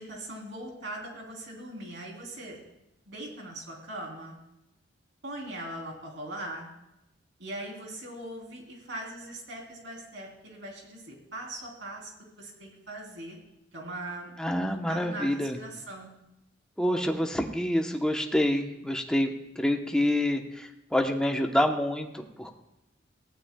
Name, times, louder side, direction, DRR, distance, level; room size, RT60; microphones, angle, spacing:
voice 1, 0.0-2.6 3.0-4.3 5.2-6.7 7.4-12.1 12.4-13.4 13.7-14.3 14.9-16.1, right 1 dB, 75° right, -1 dB, 3.4 m, -40 dB
voice 2, 14.4-15.6 16.8-19.3 19.6-22.5, left 1 dB, 5° left, 3 dB, 0.9 m, -27 dB
18.5 x 15.5 x 2.3 m, 0.91 s
head